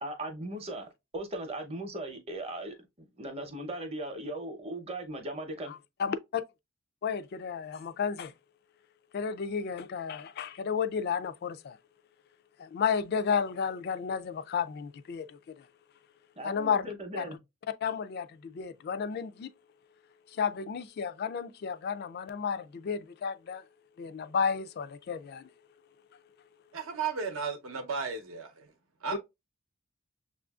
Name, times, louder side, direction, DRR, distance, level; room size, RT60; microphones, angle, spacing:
voice 1, 0.0-5.7 16.4-17.4, right 1 dB, 30° right, 0.7 m, -38 dB
voice 2, 5.7-6.4 7.0-8.3 9.1-11.8 12.6-15.7 16.4-17.3 17.8-19.5 20.3-23.6 24.0-25.5 29.1-29.2, left 6 dB, 45° left, 0.3 m, -32 dB
voice 3, 26.7-28.7 29.0-29.2, right 5 dB, 70° right, 0.7 m, -34 dB
6.6 x 2.5 x 2.3 m
head